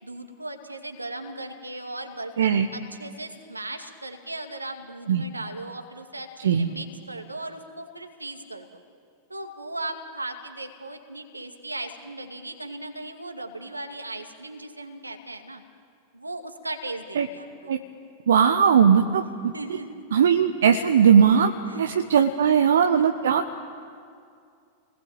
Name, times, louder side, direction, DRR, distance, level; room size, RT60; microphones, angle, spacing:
voice 1, 0.0-8.8 9.3-15.6 16.1-17.8 19.5-20.0 21.7-21.8 22.2-22.6 22.9-23.0, right 2 dB, 85° right, 5 dB, 2.3 m, -37 dB
voice 2, 18.3-19.5 20.1-23.6, right 7 dB, 65° right, 6 dB, 1.1 m, -19 dB
29.0 x 20.5 x 8.9 m, 2.3 s
figure-of-eight pair, 90°, 0 cm